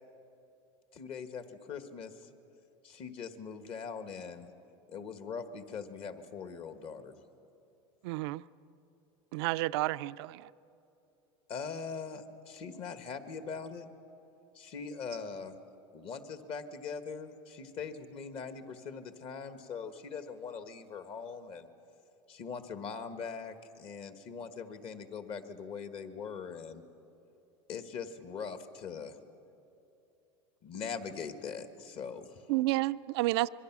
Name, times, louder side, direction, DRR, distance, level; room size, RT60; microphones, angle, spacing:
voice 1, 0.9-2.3 2.8-4.5 4.9-7.1 11.5-13.9 14.5-15.6 15.9-21.7 22.3-26.8 27.7-29.2 30.6-32.4, left 5 dB, 45° left, 1.6 m, -41 dB
voice 2, 8.0-8.4 9.3-10.5 32.5-33.5, right 18 dB, 70° right, 0.4 m, -30 dB
25.5 x 22.5 x 6.1 m
supercardioid pair, 115°, 14 cm